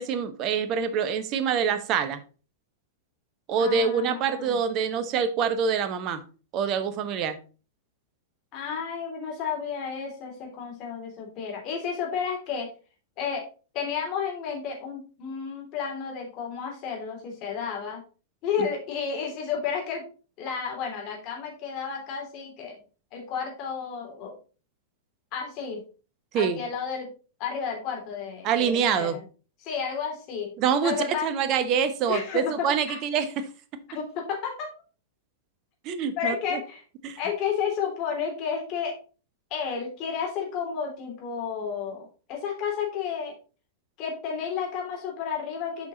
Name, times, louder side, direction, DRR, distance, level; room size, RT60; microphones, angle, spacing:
voice 1, 0.0-2.2 3.5-6.2 6.5-7.4 26.3-26.6 28.4-29.2 30.6-33.5 35.8-36.6 37.0-37.2, right 7 dB, 35° right, 11 dB, 1.0 m, -26 dB
voice 2, 3.6-4.6 8.5-12.7 13.2-13.4 13.7-18.0 18.4-20.0 20.4-22.7 23.1-24.3 25.3-25.8 26.3-27.1 27.4-29.2 29.6-30.5 30.8-31.3 32.1-33.0 33.9-34.7 36.2-36.8 37.2-39.0 39.5-43.3 44.0-45.9, left 6 dB, 40° left, 0 dB, 3.1 m, -32 dB
7.5 x 5.6 x 3.8 m, 0.36 s
figure-of-eight pair, 95°, 0 cm